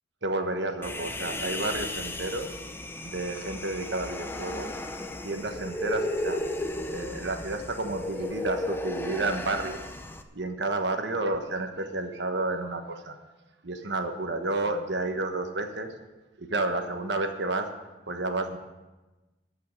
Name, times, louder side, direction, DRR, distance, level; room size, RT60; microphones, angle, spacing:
voice 1, 0.2-2.5 3.0-4.7 5.2-6.4 6.9-9.9 10.3-13.2 13.6-15.9 16.4-17.7 18.1-18.6, right 2 dB, 75° right, 5 dB, 1.3 m, -31 dB
Human voice, 0.8-10.2, left 1 dB, 10° left, 0.6 m, -35 dB
14.0 x 5.7 x 9.5 m, 1.1 s
head